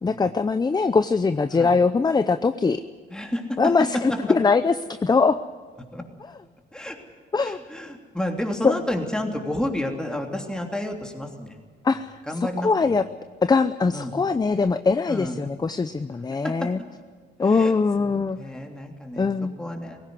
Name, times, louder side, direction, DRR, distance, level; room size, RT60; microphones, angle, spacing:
voice 1, 0.0-2.8 3.6-4.7 5.0-5.4 7.3-7.6 8.6-8.7 11.8-12.1 12.6-13.0 13.4-16.8 17.4-18.4 19.2-19.5, left 4 dB, 20° left, 12 dB, 0.6 m, -21 dB
voice 2, 3.1-3.7 4.1-4.2 5.9-6.0 6.7-7.0 7.4-11.6 11.9-12.9 13.9-14.1 15.1-15.4 16.4-16.7 17.4-17.7 18.0-19.3 19.6-20.0, left 1 dB, 5° left, 2 dB, 3.1 m, -31 dB
19.0 x 16.5 x 9.6 m, 1.5 s
cardioid pair, 90°, 20 cm